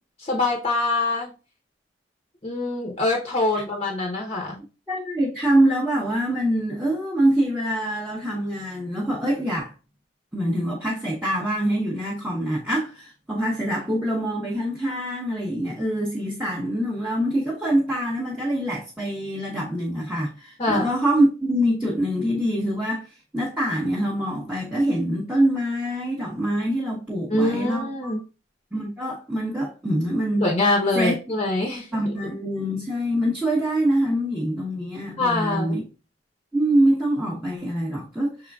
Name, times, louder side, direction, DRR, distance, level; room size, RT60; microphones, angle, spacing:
voice 1, 0.2-1.3 2.4-4.6 20.6-20.9 27.3-28.2 30.4-32.1 35.2-35.8, left 2 dB, 30° left, 0.7 m, -24 dB
voice 2, 4.9-9.7 10.3-28.2 28.7-30.5 30.9-31.2 31.9-35.8 36.5-38.5, right 1 dB, 5° right, 0.9 m, -24 dB
6.1 x 3.7 x 2.3 m
head